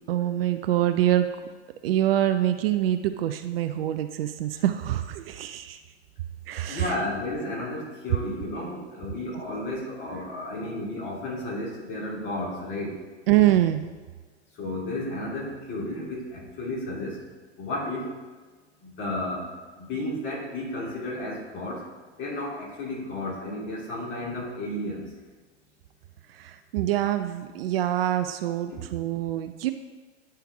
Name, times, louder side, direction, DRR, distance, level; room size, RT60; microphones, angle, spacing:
voice 1, 0.1-1.3 1.8-5.8 6.5-7.0 13.3-13.8 26.3-29.7, right 13 dB, 55° right, 9 dB, 0.5 m, -25 dB
voice 2, 6.7-13.0 14.5-17.2 17.6-18.2 18.8-21.9 22.2-25.1 28.7-28.8, left 1 dB, 30° left, -3 dB, 2.4 m, -33 dB
10.5 x 4.5 x 3.5 m, 1.4 s
hypercardioid pair, 110°, 35 cm